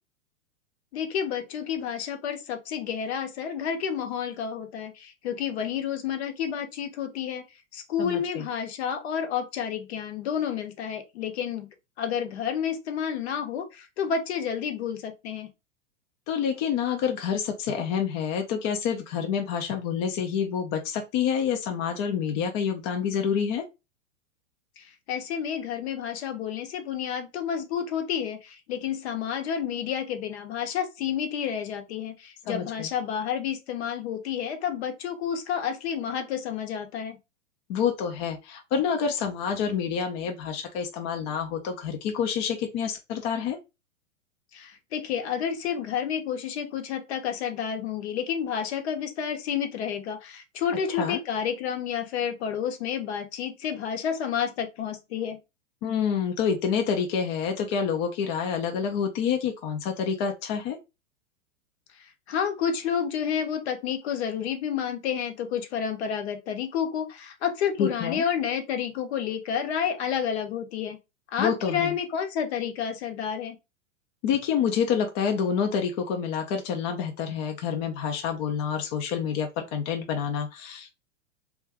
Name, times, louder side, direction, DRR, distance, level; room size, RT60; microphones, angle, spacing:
voice 1, 0.9-7.4 7.7-11.7 12.0-15.5 24.8-37.2 44.5-55.4 62.3-71.0 71.3-73.6, left 8 dB, 60° left, 0.8 m, -30 dB
voice 2, 8.0-8.5 16.3-23.6 32.5-32.9 37.7-43.6 50.9-51.2 55.8-60.8 67.8-68.2 71.4-72.0 74.2-80.9, left 7 dB, 30° left, 0.4 m, -28 dB
2.6 x 2.3 x 3.3 m
hypercardioid pair, 110°, 38 cm